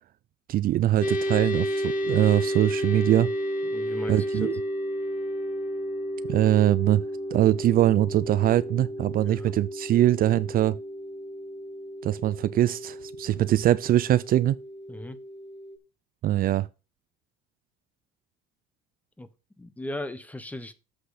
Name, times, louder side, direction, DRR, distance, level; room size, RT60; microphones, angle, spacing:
voice 1, 0.5-3.3 4.1-4.5 6.3-7.0 7.3-10.8 12.0-14.6 16.2-16.7, right 13 dB, 45° right, 0.5 m, -22 dB
sound 1, 1.0-15.8, equal, 40° left, 1.9 m, -32 dB
voice 2, 3.6-4.5 9.2-9.5 14.9-15.2 19.2-19.3 19.6-20.7, left 1 dB, 5° left, 1.1 m, -37 dB
7.9 x 6.3 x 4.8 m
cardioid pair, 110°, 20 cm